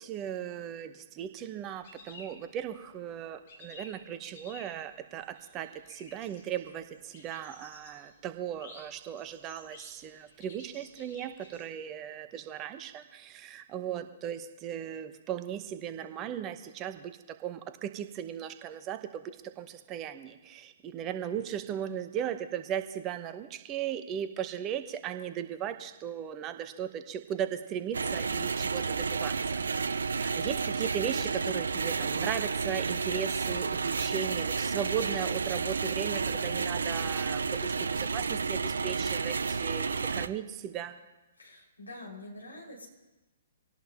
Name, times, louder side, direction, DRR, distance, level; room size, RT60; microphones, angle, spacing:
voice 1, 0.0-41.0, right 9 dB, 25° right, 10 dB, 1.0 m, -37 dB
sound 1, 1.6-3.0 3.3-11.6, left 2 dB, 45° left, 7.4 m, -53 dB
sound 2, 27.9-40.3, right 5 dB, 65° right, 0.6 m, -31 dB
voice 2, 30.2-30.5 41.4-42.9, left 2 dB, 80° left, 0 dB, 5.4 m, -46 dB
25.5 x 17.5 x 2.9 m, 1.1 s
figure-of-eight pair, 120°, 0 cm